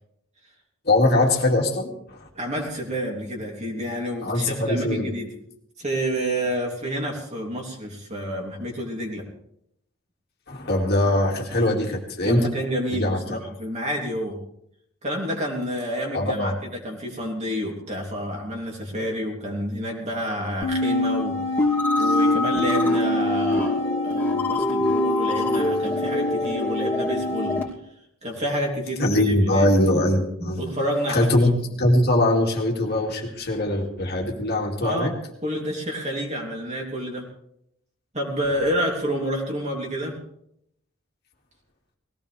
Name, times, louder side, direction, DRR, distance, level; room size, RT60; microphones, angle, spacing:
voice 1, 0.8-2.3 4.2-5.1 10.5-12.5 12.9-13.2 16.1-16.6 29.0-30.6 31.1-31.5 31.8-35.1, left 1 dB, 50° left, 0 dB, 2.4 m, -22 dB
voice 2, 2.3-5.3 5.8-9.2 12.2-14.4 15.0-21.4 22.0-27.6 28.2-29.7 30.4-31.5 34.8-35.1 35.4-37.3 38.1-40.2, equal, 35° right, 0 dB, 3.1 m, -29 dB
sound 1, 20.6-27.6, left 2 dB, 10° left, 2.7 m, -23 dB
20.0 x 16.5 x 3.4 m, 0.75 s
head